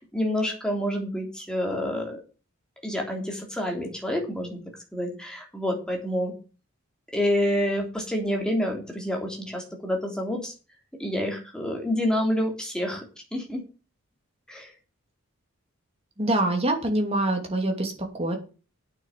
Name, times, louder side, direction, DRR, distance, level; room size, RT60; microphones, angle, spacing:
voice 1, 0.0-2.2 2.8-4.6 4.9-6.3 7.1-10.5 11.0-13.0 13.3-13.6 14.5-14.7, left 1 dB, 5° left, 1 dB, 3.3 m, -28 dB
voice 2, 16.2-18.4, right 1 dB, 30° right, 3 dB, 2.8 m, -25 dB
9.0 x 7.1 x 7.5 m, 0.35 s
head